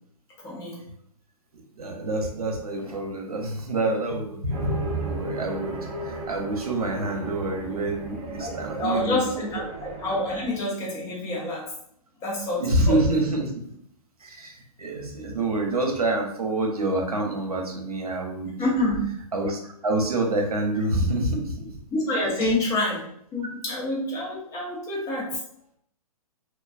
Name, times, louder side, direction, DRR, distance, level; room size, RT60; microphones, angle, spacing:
voice 1, 0.4-0.8 8.2-11.6 12.2-13.0 18.6-19.0 21.9-23.0 23.3-25.3, left 1 dB, 15° left, -4 dB, 0.8 m, -27 dB
voice 2, 1.7-5.8 6.0-9.3 12.6-13.7 14.2-18.5 19.3-21.7 22.4-22.5, right 2 dB, 70° right, 1 dB, 0.8 m, -27 dB
sound 1, 4.5-10.6, right 2 dB, 20° right, 0.4 m, -34 dB
3.1 x 2.3 x 2.3 m, 0.69 s
figure-of-eight pair, 120°, 20 cm